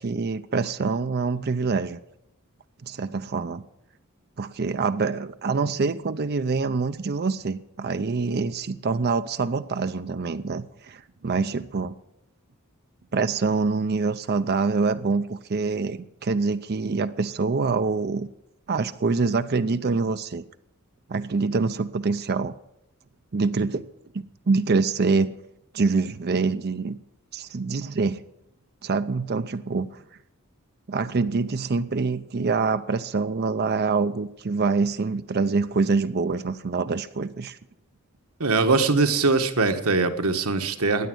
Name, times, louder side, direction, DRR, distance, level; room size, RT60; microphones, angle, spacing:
voice 1, 0.0-2.0 2.8-3.6 4.4-11.9 13.1-18.3 18.7-20.4 21.1-22.5 23.3-23.8 24.1-25.3 25.7-27.0 27.3-28.2 28.8-30.0 30.9-37.6, right 4 dB, 45° right, 11 dB, 0.5 m, -25 dB
voice 2, 38.4-41.1, right 3 dB, 75° right, 7 dB, 1.5 m, -22 dB
16.0 x 10.0 x 7.8 m, 0.83 s
head